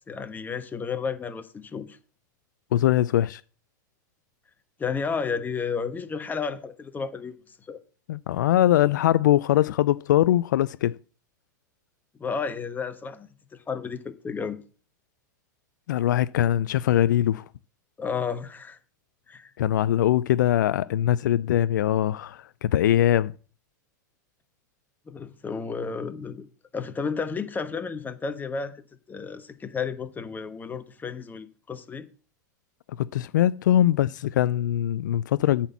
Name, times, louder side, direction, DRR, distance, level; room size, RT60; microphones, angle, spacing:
voice 1, 0.1-2.0 4.8-7.3 7.7-7.8 12.2-14.6 18.0-18.8 19.3-19.5 25.1-26.5 26.7-32.1, left 5 dB, 15° left, 1.2 m, -32 dB
voice 2, 2.7-3.4 8.1-11.0 15.9-17.5 19.6-23.3 33.0-35.7, left 12 dB, 70° left, 0.4 m, -22 dB
8.8 x 4.3 x 7.1 m
hypercardioid pair, 95°, 10 cm